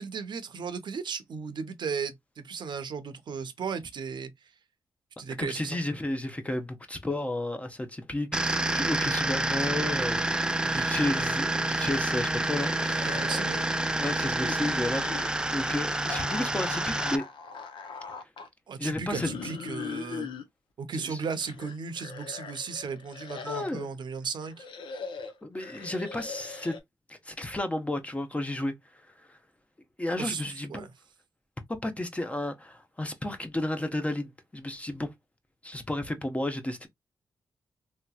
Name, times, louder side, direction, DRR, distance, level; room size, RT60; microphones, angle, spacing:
voice 1, 0.0-4.3 5.2-5.8 10.7-10.9 13.0-13.6 18.7-20.3 20.8-24.7 30.2-30.9, right 5 dB, 65° right, 0.6 m, -35 dB
voice 2, 5.4-10.2 10.6-13.3 14.0-17.3 18.8-19.3 21.0-21.2 23.4-23.9 25.4-26.8 27.1-28.7 29.3-29.4 30.0-30.9 31.8-35.1 35.6-36.9, left 1 dB, 15° left, 0.7 m, -32 dB
sound 1, 8.3-17.2, right 2 dB, 10° right, 0.4 m, -28 dB
sound 2, 10.7-11.8 12.1-13.8 14.4-15.3 16.1-18.5 19.1-20.4 21.1-23.8 24.4-26.8, left 5 dB, 85° left, 0.7 m, -40 dB
3.3 x 2.8 x 2.3 m
cardioid pair, 90°, 8 cm